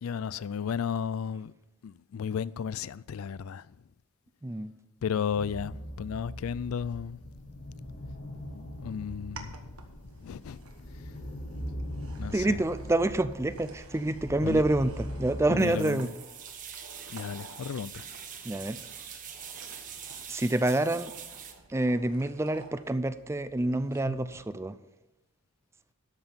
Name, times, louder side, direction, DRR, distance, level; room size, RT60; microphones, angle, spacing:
voice 1, 0.0-1.5 1.8-3.8 5.0-7.2 8.5-9.8 10.0-10.6 12.2-12.7 14.4-14.6 15.5-16.1 17.1-18.1, left 7 dB, 75° left, 0.3 m, -34 dB
sound 1, 5.3-15.6, equal, 55° left, 1.9 m, -41 dB
sound 2, 8.3-24.4, right 2 dB, 80° right, 1.4 m, -52 dB
voice 2, 12.3-16.1 18.4-18.8 20.3-21.1 21.7-24.7, right 2 dB, 10° right, 0.4 m, -27 dB
sound 3, 15.6-21.5, right 8 dB, 35° right, 1.1 m, -44 dB
13.0 x 5.8 x 6.9 m
head